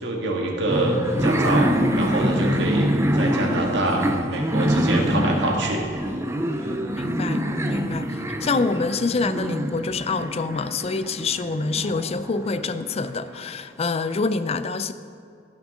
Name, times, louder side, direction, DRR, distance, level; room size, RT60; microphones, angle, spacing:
voice 1, 0.0-5.8 6.6-6.8, right 2 dB, 70° right, 0 dB, 1.7 m, -26 dB
sound 1, 0.7-13.0, equal, 15° right, 0.6 m, -25 dB
voice 2, 6.9-14.9, left 4 dB, 35° left, 12 dB, 0.4 m, -26 dB
15.5 x 6.4 x 3.7 m, 2.5 s
head